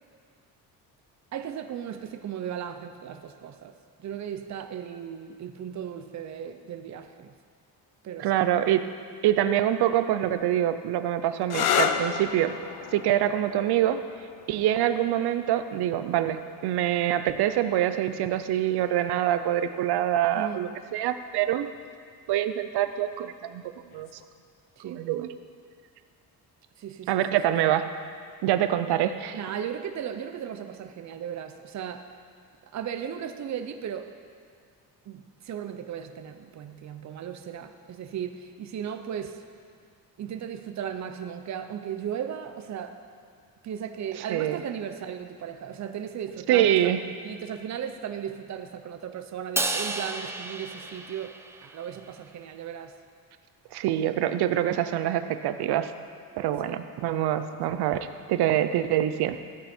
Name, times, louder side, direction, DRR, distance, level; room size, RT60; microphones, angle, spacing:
voice 1, 1.3-3.7 4.0-7.3 8.0-8.5 20.4-20.7 24.8-25.1 26.8-27.2 29.3-32.1 32.7-34.1 35.1-39.4 40.2-43.0 43.6-51.4 51.6-52.9 56.6-56.7, right 8 dB, 45° right, 7 dB, 0.7 m, -36 dB
voice 2, 8.2-8.9 9.2-12.6 12.9-14.0 14.5-21.7 22.3-23.6 23.9-24.1 24.8-25.3 27.1-27.9 28.4-29.4 44.3-44.6 46.5-47.1 53.7-55.9 56.4-59.4, right 11 dB, 90° right, 10 dB, 0.7 m, -25 dB
sound 1, 11.4-18.9 19.9-20.4 23.9-24.3, left 8 dB, 75° left, 0.8 m, -33 dB
Crash cymbal, 49.6-51.9, right 2 dB, 5° right, 0.6 m, -32 dB
14.5 x 9.0 x 4.4 m, 2.2 s
cardioid pair, 115°, 38 cm